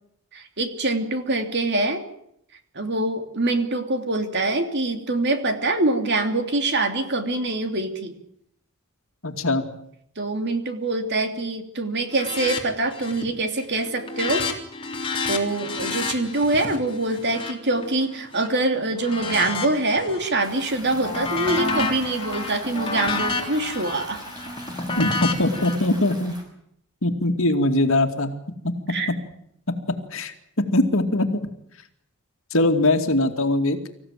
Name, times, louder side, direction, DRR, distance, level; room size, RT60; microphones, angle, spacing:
voice 1, 0.3-2.0 2.7-8.2 10.2-14.4 15.3-24.2 28.9-29.1, right 2 dB, 50° right, 6 dB, 2.9 m, -24 dB
voice 2, 9.2-9.6 25.0-26.4 27.0-28.3 28.6-29.0 29.7-29.8 30.1-30.3 30.7-31.3 32.5-33.8, left 1 dB, 65° left, 6 dB, 2.5 m, -21 dB
sound 1, 12.1-12.6 12.9-13.3 13.6-18.5 19.0-20.3 20.7-25.8, left 4 dB, 25° left, 3.4 m, -30 dB
Stream, 20.4-26.4, right 1 dB, 20° right, 6.1 m, -42 dB
26.0 x 15.5 x 9.3 m, 0.75 s
head